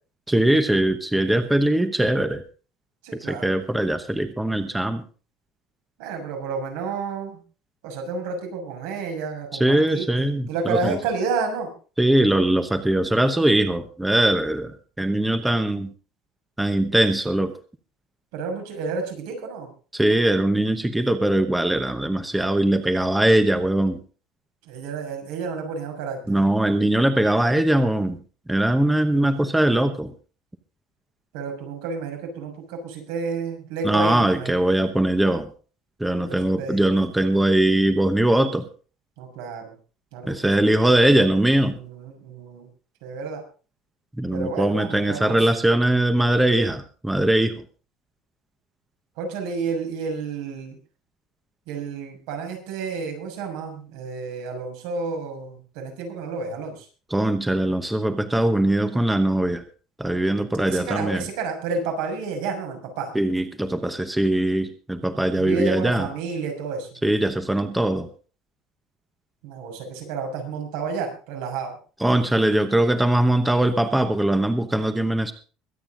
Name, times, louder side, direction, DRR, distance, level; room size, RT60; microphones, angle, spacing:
voice 1, 0.3-2.4 3.1-5.0 9.5-11.0 12.0-14.7 15.0-15.9 16.6-17.5 19.9-24.0 26.3-28.2 28.5-30.1 33.8-35.5 36.0-38.7 40.3-41.8 44.2-47.6 57.1-59.6 60.0-61.2 63.1-66.1 67.0-68.1 72.0-75.3, right 1 dB, 5° right, 9 dB, 1.0 m, -21 dB
voice 2, 3.0-3.6 6.0-7.4 7.8-11.7 18.3-19.7 24.6-26.4 29.0-29.5 31.3-34.6 36.2-36.9 39.2-39.7 40.1-40.7 41.7-42.7 43.0-43.4 44.3-45.5 49.2-50.8 51.7-56.9 60.7-63.1 65.4-66.9 69.4-71.8, right 4 dB, 80° right, 3 dB, 6.2 m, -31 dB
23.0 x 9.0 x 3.9 m, 0.37 s
cardioid pair, 165°, 0 cm